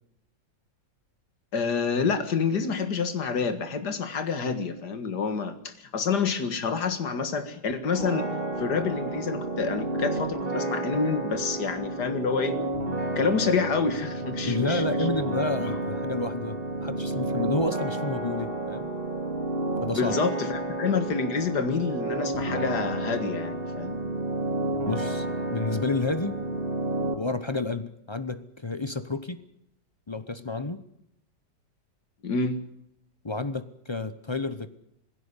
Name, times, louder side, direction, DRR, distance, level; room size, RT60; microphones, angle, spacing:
voice 1, 1.5-8.3 8.6-12.6 13.2-15.1 15.6-15.8 19.9-24.0 32.2-32.6, left 5 dB, 60° left, 9 dB, 2.3 m, -28 dB
sound 1, 7.9-27.1, right 2 dB, 30° right, 2.4 m, -30 dB
voice 2, 14.4-18.9 19.8-20.2 24.8-26.3 27.1-29.4 30.1-30.8 33.2-34.7, left 3 dB, 35° left, 12 dB, 0.4 m, -30 dB
20.0 x 16.5 x 9.9 m, 0.80 s
omnidirectional pair, 2.0 m